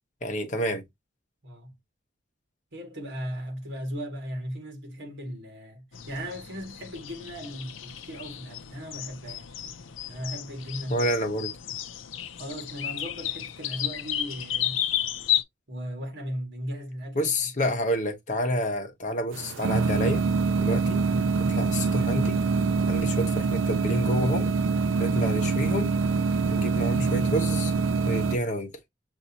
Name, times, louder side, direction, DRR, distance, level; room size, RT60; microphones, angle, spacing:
voice 1, 0.2-0.8 10.9-11.5 17.1-20.2 20.6-21.0 21.4-22.4 22.9-24.5 25.0-25.9 26.5-27.7 28.1-28.7, equal, 40° left, 1.0 m, -28 dB
voice 2, 2.7-9.6 10.0-11.1 12.3-14.8 15.7-17.5, equal, 60° right, 1.8 m, -37 dB
sound 1, 5.9-15.4, left 11 dB, 80° left, 0.6 m, -33 dB
sound 2, 19.3-28.4, right 4 dB, 80° right, 0.4 m, -25 dB
6.3 x 2.7 x 2.7 m
head